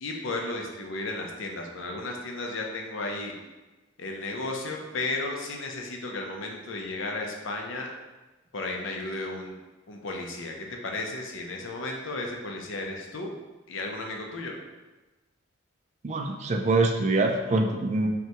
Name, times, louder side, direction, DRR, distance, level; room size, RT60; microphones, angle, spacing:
voice 1, 0.0-3.3 4.0-7.9 8.5-9.6 9.9-13.3 13.7-14.6, left 2 dB, 75° left, 1 dB, 0.6 m, -34 dB
voice 2, 16.0-18.1, right 2 dB, 35° right, 3 dB, 0.3 m, -24 dB
5.7 x 2.3 x 2.9 m, 1.2 s
head